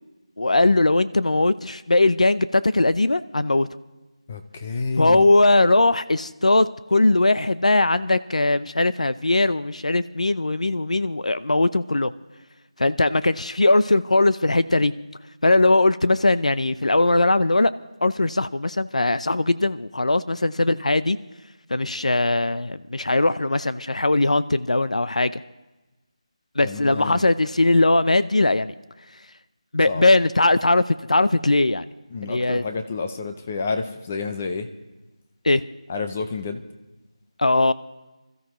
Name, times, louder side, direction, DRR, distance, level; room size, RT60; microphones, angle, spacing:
voice 1, 0.4-3.7 5.0-12.1 12.8-14.9 15.4-17.7 18.0-21.2 21.7-25.4 26.6-28.7 29.7-31.8 32.2-32.6 35.4-35.6 37.4-37.7, left 2 dB, 80° left, 15 dB, 0.6 m, -20 dB
voice 2, 4.3-5.3 26.6-27.2 29.9-30.1 32.1-34.7 35.9-36.6, left 4 dB, 15° left, 7 dB, 0.5 m, -29 dB
26.0 x 13.5 x 3.1 m, 1.1 s
figure-of-eight pair, 175°, 4 cm